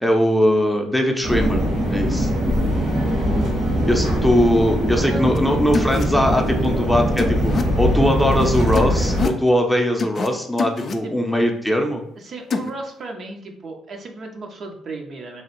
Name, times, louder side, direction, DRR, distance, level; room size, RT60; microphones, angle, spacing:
voice 1, 0.0-1.6 1.9-2.3 3.9-7.5 7.8-12.0, equal, 5° left, 2 dB, 0.6 m, -20 dB
sound 1, 1.2-9.3, equal, 80° right, 1.5 m, -21 dB
sound 2, 5.3-5.4 5.7-6.0 7.2-7.6 8.7-9.4 10.0-10.3 10.6-11.0 12.5-12.7, left 4 dB, 50° left, 0.3 m, -25 dB
voice 2, 12.2-15.4, right 3 dB, 55° right, 2 dB, 0.6 m, -34 dB
3.0 x 2.3 x 3.0 m, 0.77 s
supercardioid pair, 65°, 0 cm